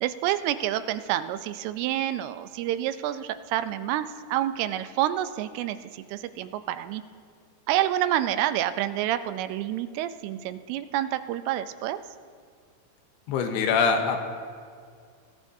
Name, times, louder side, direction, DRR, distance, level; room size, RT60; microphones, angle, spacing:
voice 1, 0.0-7.0 7.7-12.0, right 12 dB, 85° right, 11 dB, 2.6 m, -28 dB
voice 2, 13.3-14.2, left 5 dB, 85° left, 5 dB, 3.0 m, -23 dB
23.5 x 14.0 x 2.7 m, 2.1 s
omnidirectional pair, 4.6 m